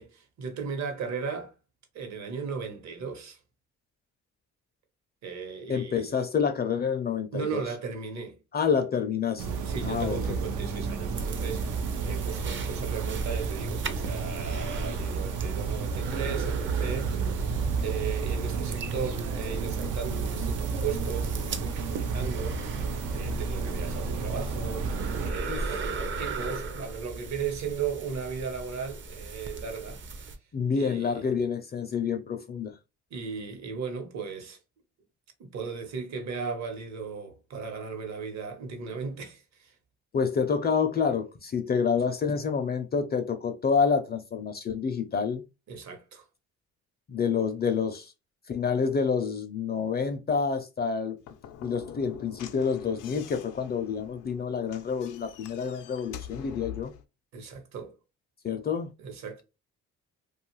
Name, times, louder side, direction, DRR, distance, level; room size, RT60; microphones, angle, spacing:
voice 1, 0.0-1.5 1.9-3.4 5.2-6.1 7.3-8.4 9.6-17.2 17.8-24.9 25.2-30.4 30.7-31.3 33.1-34.6 35.4-39.7 45.7-46.2 57.3-58.0 59.0-59.4, right 6 dB, 65° right, 1.0 m, -36 dB
voice 2, 5.7-7.6 8.5-9.5 9.8-10.2 25.5-25.7 30.5-32.7 40.1-45.4 47.1-48.1 48.5-51.2 51.6-56.9 58.4-58.9, left 6 dB, 35° left, 0.4 m, -28 dB
sound 1, 9.4-25.3, right 5 dB, 85° right, 0.6 m, -31 dB
sound 2, 11.2-30.4, right 3 dB, 40° right, 0.5 m, -38 dB
Slam / Knock, 51.2-57.0, left 10 dB, 90° left, 0.5 m, -45 dB
2.5 x 2.4 x 2.9 m
cardioid pair, 90°, 30 cm